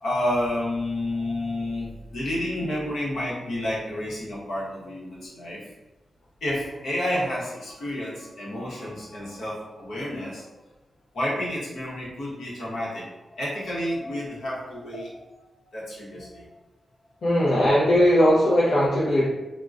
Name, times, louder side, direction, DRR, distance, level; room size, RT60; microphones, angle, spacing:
voice 1, 0.0-5.7 6.4-10.5 11.1-15.4 15.7-16.5, left 1 dB, 80° left, -6 dB, 1.0 m, -30 dB
voice 2, 17.2-19.3, equal, 65° left, -8 dB, 0.6 m, -19 dB
3.7 x 2.1 x 2.5 m, 1.1 s
wide cardioid pair, 160°, 0 cm